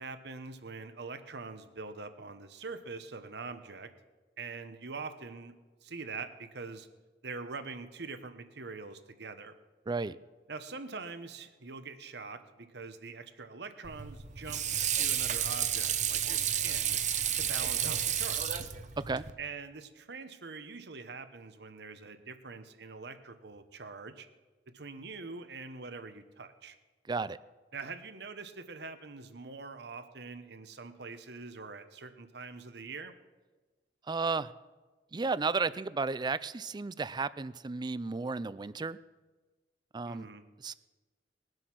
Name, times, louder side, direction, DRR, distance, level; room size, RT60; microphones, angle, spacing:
voice 1, 0.0-3.9 4.4-5.5 5.8-6.9 7.2-9.5 10.5-14.6 14.9-17.0 17.4-18.6 19.4-24.3 24.7-26.8 27.7-33.1 40.1-40.4, right 4 dB, 65° right, 10 dB, 1.1 m, -44 dB
voice 2, 9.9-10.2 19.0-19.2 27.1-27.4 34.1-34.5 35.1-39.0 39.9-40.3 40.6-40.7, right 4 dB, 25° right, 17 dB, 0.4 m, -33 dB
Water / Sink (filling or washing), 13.8-19.3, right 9 dB, 45° right, 0.8 m, -31 dB
20.5 x 7.8 x 6.1 m, 1.2 s
head